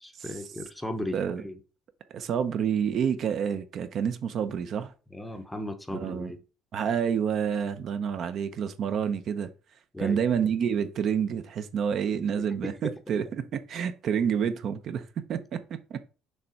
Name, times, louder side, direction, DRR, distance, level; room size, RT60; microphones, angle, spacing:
voice 1, 0.0-1.6 5.1-6.4 9.9-10.3 12.4-12.9, left 1 dB, 5° left, 0.7 m, -36 dB
voice 2, 2.1-4.9 5.9-6.3 6.7-9.5 10.0-16.0, right 7 dB, 45° right, 0.6 m, -28 dB
6.6 x 3.4 x 4.3 m
cardioid pair, 160°, 0 cm